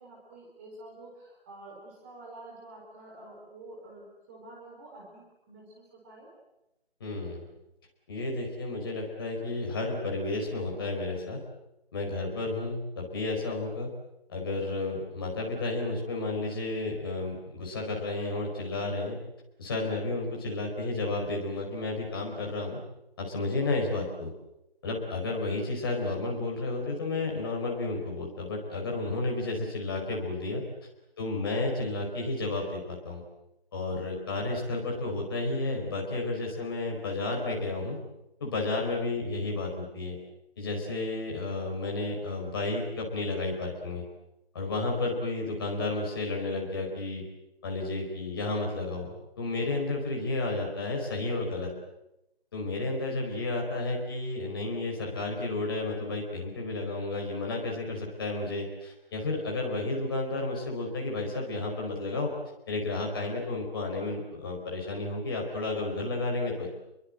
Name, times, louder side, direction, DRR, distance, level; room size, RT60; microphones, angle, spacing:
voice 1, 0.0-6.3 12.1-12.4, right 2 dB, 15° right, -3 dB, 4.6 m, -49 dB
voice 2, 7.0-7.5 8.1-11.4 11.9-13.9 14.3-19.2 19.6-22.8 23.2-24.3 24.8-30.6 31.2-33.2 33.7-38.0 38.4-40.2 40.6-44.0 44.5-47.2 47.6-49.1 49.4-51.7 52.5-62.3 62.7-66.7, left 2 dB, 20° left, -1 dB, 4.7 m, -32 dB
30.0 x 23.0 x 7.8 m, 0.89 s
figure-of-eight pair, 170°, 32 cm